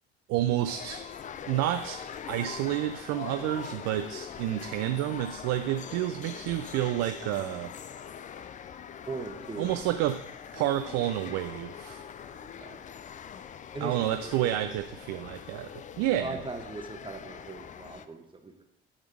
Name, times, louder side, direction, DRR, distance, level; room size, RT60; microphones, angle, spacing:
voice 1, 0.3-1.1 1.5-7.7 9.6-10.2 10.5-12.1 13.8-15.7 16.0-16.4, right 13 dB, 60° right, 9 dB, 0.5 m, -29 dB
sound 1, 0.7-18.1, left 8 dB, 25° left, 0.4 m, -43 dB
voice 2, 9.1-9.8 12.3-12.8 13.7-14.8 15.1-15.4 16.2-18.6, right 3 dB, 15° right, 4 dB, 1.1 m, -40 dB
9.5 x 3.6 x 4.9 m, 0.84 s
hypercardioid pair, 60°, 29 cm